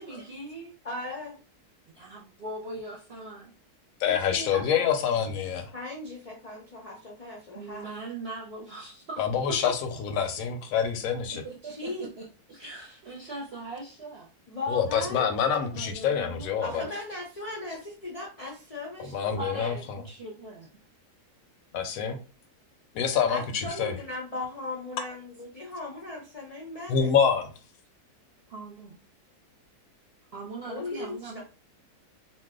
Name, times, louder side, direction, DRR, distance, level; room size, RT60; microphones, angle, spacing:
voice 1, 0.0-0.7 1.9-3.5 7.5-9.2 9.5-9.7 11.3-14.3 15.7-16.9 19.3-20.7 28.5-29.0 30.3-31.4, right 3 dB, 55° right, 0.8 m, -40 dB
voice 2, 0.8-1.4 4.1-4.9 5.7-7.9 11.6-12.1 14.5-15.3 16.6-19.7 23.3-27.1 30.6-31.4, left 2 dB, 55° left, 0.4 m, -37 dB
voice 3, 4.0-5.7 9.2-11.4 14.7-16.8 19.0-20.0 21.7-22.2 22.9-24.0 26.9-27.5, left 7 dB, 70° left, 0.9 m, -26 dB
2.6 x 2.1 x 3.6 m
omnidirectional pair, 1.7 m